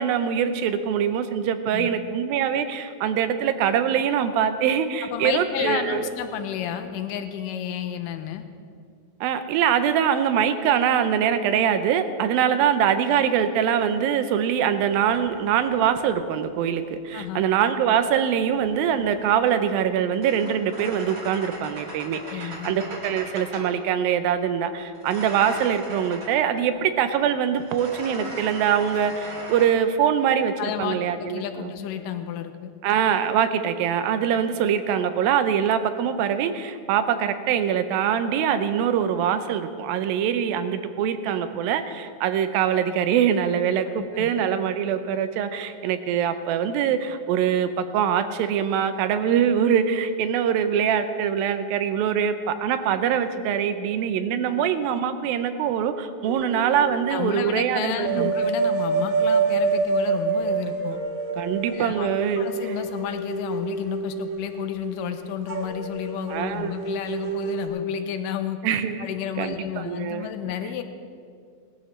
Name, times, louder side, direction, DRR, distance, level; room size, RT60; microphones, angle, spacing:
voice 1, 0.0-6.1 9.2-31.7 32.8-58.3 61.4-62.5 66.3-66.7 68.6-69.1 69.4-70.3, right 8 dB, 85° right, 10 dB, 2.5 m, -23 dB
voice 2, 5.0-8.5 17.1-17.5 22.2-22.7 30.6-32.7 44.1-44.3 54.5-54.7 57.1-61.0 61.7-68.6 69.0-70.8, left 9 dB, 80° left, 8 dB, 2.2 m, -31 dB
sound 1, 14.9-17.1 18.3-23.8 24.9-26.4 27.5-29.7, right 1 dB, 30° right, 1.8 m, -39 dB
sound 2, 56.3-57.4 57.7-67.7, right 4 dB, 55° right, 1.8 m, -27 dB
19.5 x 13.5 x 3.2 m, 2.2 s
omnidirectional pair, 4.1 m